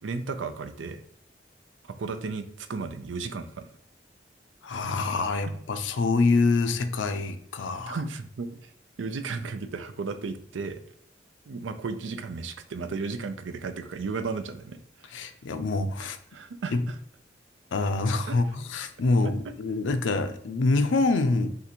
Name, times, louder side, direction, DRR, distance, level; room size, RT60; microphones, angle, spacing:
voice 1, 0.0-1.0 2.0-3.6 7.9-8.7 9.0-10.8 11.5-15.2 16.0-17.0 18.3-18.4, right 4 dB, 85° right, 9 dB, 0.5 m, -34 dB
voice 2, 4.6-8.0 15.1-16.2 16.7-16.8 17.7-21.5, left 3 dB, 85° left, 9 dB, 0.5 m, -25 dB
5.6 x 2.5 x 2.9 m, 0.68 s
head